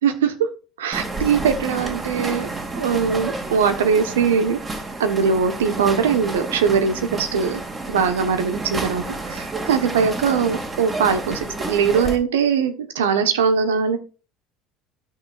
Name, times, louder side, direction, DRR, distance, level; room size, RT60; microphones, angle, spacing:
voice 1, 0.0-0.3 0.8-2.5 2.8-4.6 5.0-7.6 7.9-14.0, right 6 dB, 85° right, 8 dB, 1.1 m, -21 dB
sound 1, 0.9-12.2, right 2 dB, 25° right, 2.2 m, -30 dB
13.5 x 5.9 x 2.4 m, 0.33 s
hypercardioid pair, 70°, 0 cm